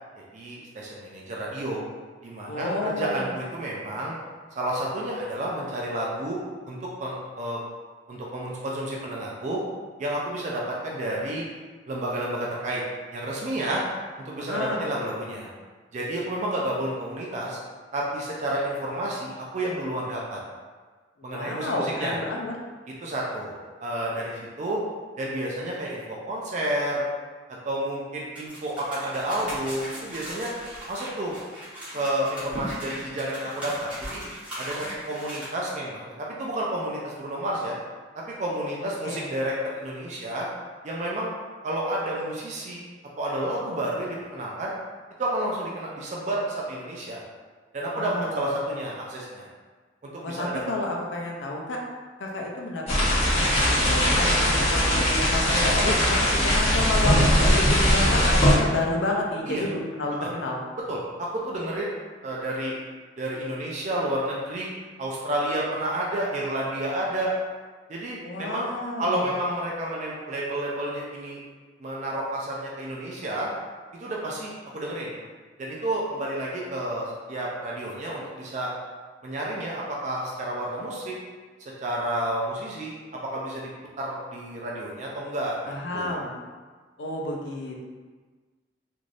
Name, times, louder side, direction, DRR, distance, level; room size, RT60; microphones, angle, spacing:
voice 1, 0.2-1.8 2.2-4.1 4.6-6.4 6.7-7.6 8.1-9.6 10.0-11.5 11.9-12.8 13.1-13.8 14.2-15.5 15.9-17.6 17.9-20.4 21.2-22.2 23.0-24.8 25.2-27.1 27.6-30.5 30.9-31.3 31.9-34.2 34.6-37.8 38.1-40.5 40.8-41.3 41.6-42.8 43.2-44.7 45.2-47.2 47.7-49.5 50.0-50.6 59.5-59.7 60.2-60.3 60.9-61.9 62.2-62.7 63.2-64.7 65.0-67.3 67.9-68.7 69.0-71.4 71.8-73.5 74.0-75.2 75.6-78.7 79.2-81.1 81.8-83.0 83.3-83.7 84.0-86.2, right 1 dB, 40° right, -3 dB, 0.4 m, -30 dB
voice 2, 2.5-3.3 14.4-14.9 21.2-22.5 39.0-39.2 47.9-48.4 50.2-51.8 52.2-60.6 68.2-69.3 85.7-86.4 87.0-87.7, left 2 dB, 75° left, 0 dB, 0.5 m, -30 dB
sound 1, 28.3-35.4, equal, 5° right, 1.1 m, -38 dB
sound 2, 52.9-58.5, equal, 35° left, 0.9 m, -20 dB
3.2 x 2.5 x 2.5 m, 1.4 s
head